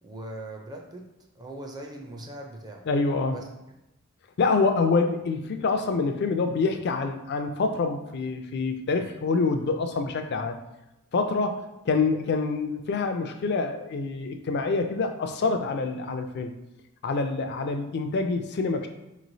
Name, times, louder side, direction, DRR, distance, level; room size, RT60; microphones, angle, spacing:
voice 1, 0.0-1.1 1.3-2.9 3.3-3.5, right 1 dB, 20° right, 1 dB, 0.4 m, -40 dB
voice 2, 2.9-3.4 4.4-10.6 11.1-16.5 17.0-18.9, left 4 dB, 50° left, 6 dB, 0.4 m, -26 dB
4.5 x 3.0 x 2.6 m, 0.94 s
head